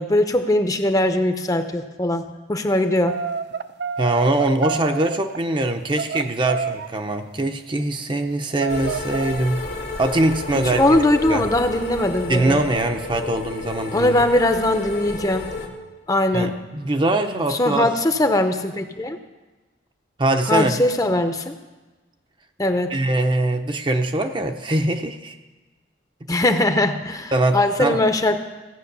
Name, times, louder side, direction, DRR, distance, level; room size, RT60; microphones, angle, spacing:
voice 1, 0.0-2.2 2.5-3.2 10.8-12.6 13.9-15.5 16.1-16.5 17.5-19.2 20.5-21.6 22.6-23.0 26.3-28.4, left 1 dB, 20° left, 8 dB, 0.7 m, -20 dB
sound 1, 3.1-5.4 6.0-6.9 7.3-7.4 7.6-8.3 8.6-9.5 9.8-10.0 10.6-11.0 11.6-11.8, right 5 dB, 65° right, 0.5 m, -29 dB
voice 2, 4.0-9.7 10.0-10.8 11.3-11.4 12.3-14.2 16.3-17.9 20.2-20.8 22.9-25.4 27.3-28.0, right 2 dB, 25° right, 6 dB, 0.6 m, -22 dB
sound 2, 8.7-15.7, left 3 dB, 70° left, 1.7 m, -31 dB
15.5 x 6.2 x 8.1 m, 1.2 s
head